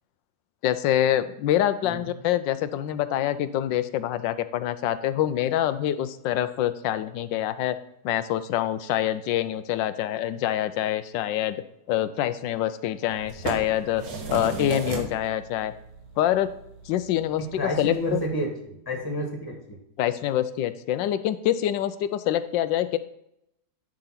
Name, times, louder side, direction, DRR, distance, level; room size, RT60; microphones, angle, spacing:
voice 1, 0.6-7.8 8.0-11.6 11.9-14.0 14.3-15.7 16.2-16.5 16.9-18.2 20.0-23.0, left 12 dB, 80° left, 13 dB, 1.2 m, -25 dB
sound 1, 13.0-18.3, right 3 dB, 55° right, 1.5 m, -36 dB
voice 2, 17.4-19.8, equal, 15° left, 1 dB, 1.4 m, -30 dB
10.0 x 3.8 x 5.7 m, 0.77 s
omnidirectional pair, 2.0 m